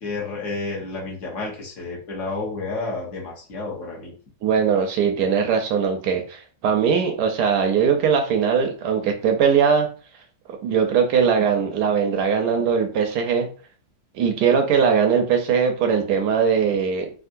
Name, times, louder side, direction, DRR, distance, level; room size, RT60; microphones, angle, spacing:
voice 1, 0.0-4.1, left 3 dB, 50° left, -2 dB, 1.1 m, -30 dB
voice 2, 4.4-9.9 10.5-13.5 14.1-17.1, right 6 dB, 75° right, 4 dB, 1.0 m, -20 dB
3.6 x 2.4 x 2.5 m, 0.40 s
omnidirectional pair, 2.0 m